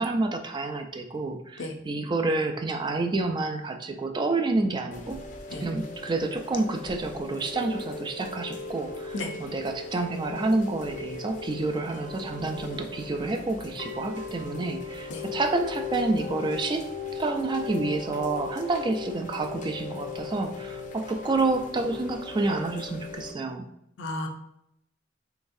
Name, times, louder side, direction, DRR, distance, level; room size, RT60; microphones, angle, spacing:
voice 1, 0.0-5.2 5.6-16.9 17.1-23.7, right 3 dB, 25° right, 5 dB, 0.4 m, -29 dB
voice 2, 1.6-1.7 5.5-5.6 9.1-9.3 15.1-15.2 24.0-24.3, left 2 dB, 90° left, 3 dB, 0.6 m, -32 dB
Chime / Rain, 4.9-23.3, left 4 dB, 45° left, 0.5 m, -38 dB
3.9 x 3.4 x 2.6 m, 0.78 s
head